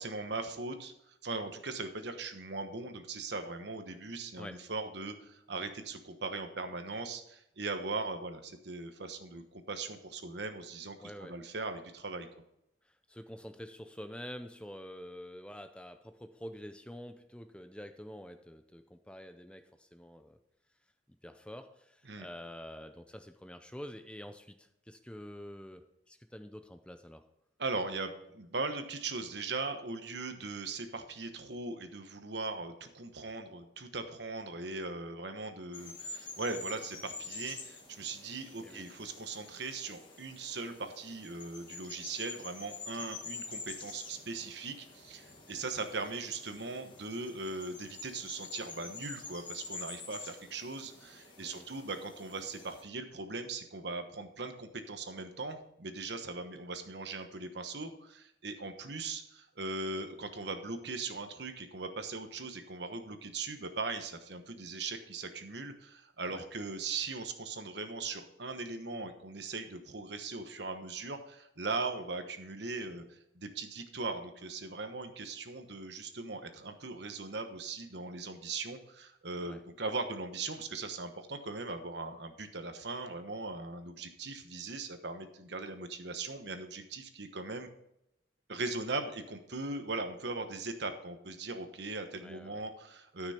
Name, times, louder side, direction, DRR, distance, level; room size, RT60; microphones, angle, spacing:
voice 1, 0.0-12.3 22.1-22.3 27.6-87.7 88.5-93.3, right 3 dB, 65° right, 7 dB, 1.1 m, -39 dB
voice 2, 11.0-11.4 12.8-20.4 21.1-27.2 38.6-38.8 51.4-51.7 66.3-66.4 79.5-79.6 92.2-92.6, equal, 5° left, 8 dB, 0.5 m, -47 dB
sound 1, 35.7-52.8, left 3 dB, 25° left, 1.6 m, -47 dB
13.5 x 6.1 x 4.3 m, 0.82 s
head